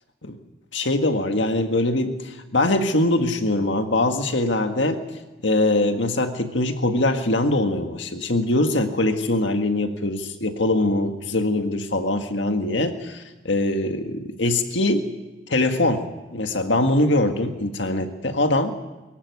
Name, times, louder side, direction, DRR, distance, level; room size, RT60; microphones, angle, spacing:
voice 1, 0.7-5.0 5.4-15.1 15.5-16.1 16.3-18.8, left 2 dB, 70° left, 6 dB, 1.8 m, -22 dB
23.5 x 15.5 x 9.6 m, 1.1 s
head